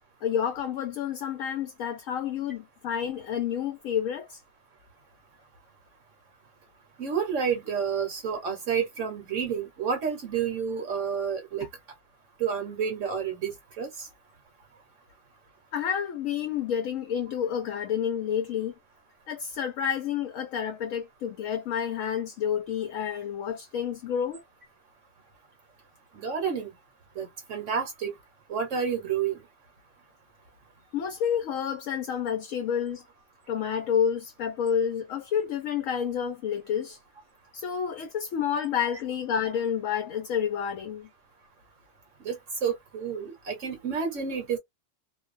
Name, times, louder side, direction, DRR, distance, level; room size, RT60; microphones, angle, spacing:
voice 1, 0.2-4.4 11.6-11.7 15.7-18.7 19.3-24.4 30.9-33.0 33.5-37.0 37.5-41.1, left 8 dB, 70° left, 0.9 m, -29 dB
voice 2, 7.0-11.6 12.4-14.1 26.2-26.7 27.2-28.1 28.5-29.4 42.2-44.6, right 7 dB, 60° right, 1.0 m, -30 dB
2.5 x 2.2 x 2.3 m
omnidirectional pair, 1.6 m